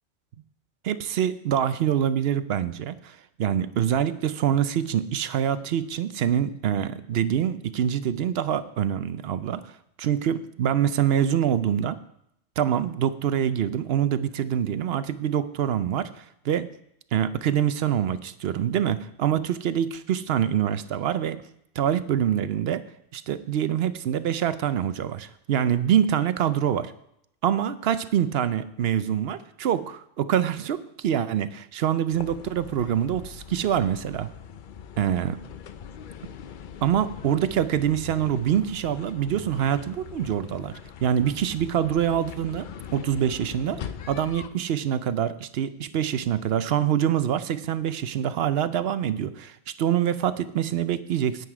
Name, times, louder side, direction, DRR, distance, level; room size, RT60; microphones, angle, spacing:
voice 1, 0.8-9.6 10.0-12.0 12.6-16.7 17.1-21.4 21.8-22.8 23.1-26.9 27.4-34.3 35.0-35.4 36.8-40.7 41.0-51.5, right 9 dB, 65° right, 13 dB, 0.8 m, -25 dB
sound 1, 32.1-44.5, left 8 dB, 55° left, 0.6 m, -41 dB
9.6 x 9.3 x 4.8 m, 0.75 s
omnidirectional pair, 1.2 m